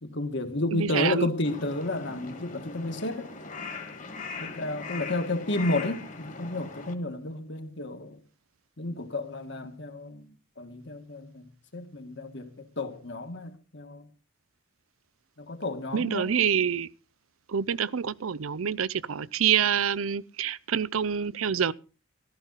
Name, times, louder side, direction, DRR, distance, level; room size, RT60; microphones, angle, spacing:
voice 1, 0.0-3.3 4.4-8.2 8.8-14.1 15.4-16.3, left 2 dB, 60° left, 1.8 m, -32 dB
voice 2, 0.7-1.3 15.9-16.9 17.5-21.7, right 8 dB, 90° right, 0.6 m, -26 dB
Crow, 1.4-6.9, left 4 dB, 40° left, 1.8 m, -40 dB
14.5 x 13.0 x 4.1 m
head